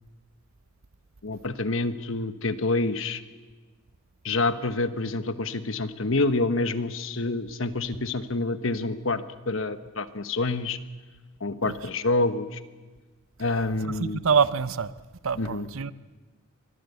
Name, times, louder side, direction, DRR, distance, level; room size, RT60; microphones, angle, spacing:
voice 1, 1.2-3.2 4.2-10.8 11.4-12.6 13.4-14.2 15.4-15.7, left 2 dB, 65° left, 1.2 m, -27 dB
voice 2, 13.8-14.9 15.2-15.9, right 6 dB, 75° right, 0.7 m, -25 dB
24.0 x 18.0 x 8.2 m
head